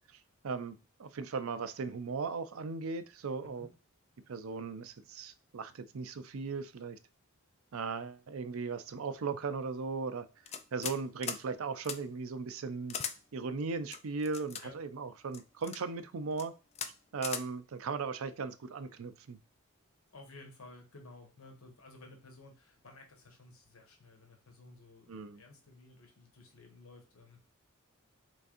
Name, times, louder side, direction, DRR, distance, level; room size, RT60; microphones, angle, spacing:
voice 1, 0.4-3.7 4.3-7.0 7.7-10.3 10.7-13.0 13.3-16.5 17.1-19.4 25.1-25.4, right 4 dB, 75° right, 0.5 m, -37 dB
voice 2, 3.4-3.7 14.6-14.8 20.1-27.4, left 2 dB, 75° left, 1.3 m, -55 dB
sound 1, 10.5-11.0 11.2-11.4 11.8-12.0 12.9-13.1 13.9-14.6 15.3-15.8 16.3-16.5 16.7-16.9 17.2-17.4, left 7 dB, 30° left, 0.4 m, -38 dB
3.9 x 3.4 x 2.5 m
head